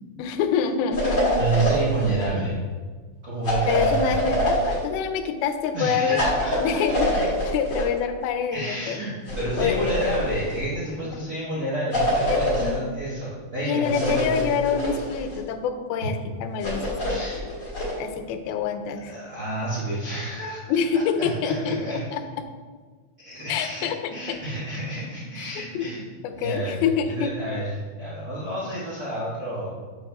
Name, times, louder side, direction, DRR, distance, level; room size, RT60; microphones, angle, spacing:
voice 1, 0.2-1.4 3.7-6.2 6.6-9.0 9.6-9.9 11.0-11.2 12.3-12.9 13.6-17.0 18.0-19.2 20.7-22.2 23.5-24.1 25.4-25.9 26.2-27.3, left 7 dB, 90° left, 8 dB, 2.5 m, -26 dB
sound 1, 0.9-2.3 3.4-4.8 6.1-7.9 9.3-10.6 11.9-12.7 13.8-15.4 16.6-18.0, equal, 35° left, 1.3 m, -25 dB
voice 2, 1.3-2.6 3.2-4.2 5.7-6.8 7.1-7.2 8.5-9.1 9.4-14.5 17.0-17.4 19.0-20.6 20.9-22.0 23.2-26.0 26.4-29.7, right 2 dB, 80° right, -9 dB, 0.8 m, -29 dB
7.0 x 6.6 x 2.3 m, 1.5 s
omnidirectional pair, 4.3 m